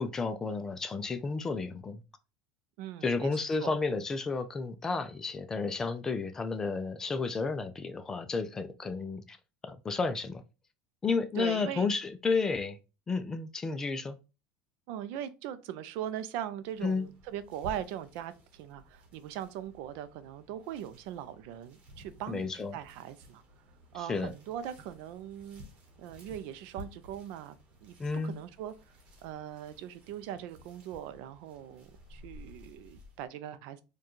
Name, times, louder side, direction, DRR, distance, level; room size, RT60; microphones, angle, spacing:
voice 1, 0.0-2.0 3.0-9.4 9.6-10.4 11.0-12.8 13.1-14.2 16.8-17.1 22.3-22.7 24.1-24.3 28.0-28.4, left 4 dB, 15° left, 0.3 m, -32 dB
voice 2, 2.8-3.7 11.4-11.9 14.9-23.4 23.9-25.6 26.0-27.6 27.8-27.9 28.2-28.7 29.2-33.8, right 10 dB, 60° right, 0.4 m, -40 dB
sound 1, 16.6-33.3, left 1 dB, 35° right, 1.1 m, -54 dB
4.5 x 2.3 x 3.0 m
cardioid pair, 160°, 3 cm